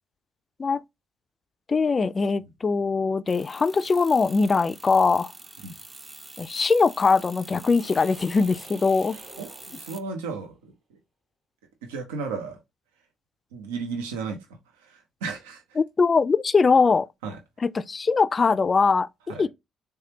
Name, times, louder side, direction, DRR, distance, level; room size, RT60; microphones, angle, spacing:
voice 1, 1.7-5.3 6.4-9.2 15.8-17.1 17.6-19.5, left 4 dB, 40° left, 0.3 m, -21 dB
sound 1, 3.3-10.0, right 2 dB, 25° right, 0.5 m, -45 dB
sound 2, 7.8-10.4, right 3 dB, 60° right, 1.4 m, -50 dB
voice 2, 9.4-11.0 11.8-12.6 13.5-15.8 17.2-17.4 19.3-19.5, right 4 dB, 85° right, 0.6 m, -35 dB
3.3 x 3.2 x 2.8 m
hypercardioid pair, 50°, 0 cm